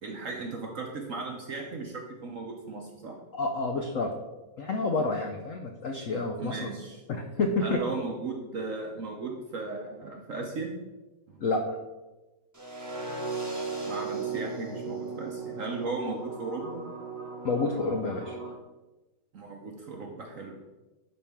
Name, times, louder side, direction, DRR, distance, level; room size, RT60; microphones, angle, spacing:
voice 1, 0.0-3.2 6.4-7.0 7.6-10.8 11.3-11.4 13.8-16.8 19.3-20.6, right 3 dB, 60° right, 1 dB, 0.9 m, -36 dB
voice 2, 3.3-4.1 4.6-6.6 7.1-7.8 11.4-11.6 17.4-18.4, left 3 dB, 85° left, 3 dB, 0.7 m, -29 dB
sound 1, 12.5-18.5, right 3 dB, 10° right, 1.1 m, -37 dB
11.0 x 4.4 x 3.6 m, 1.1 s
omnidirectional pair, 2.2 m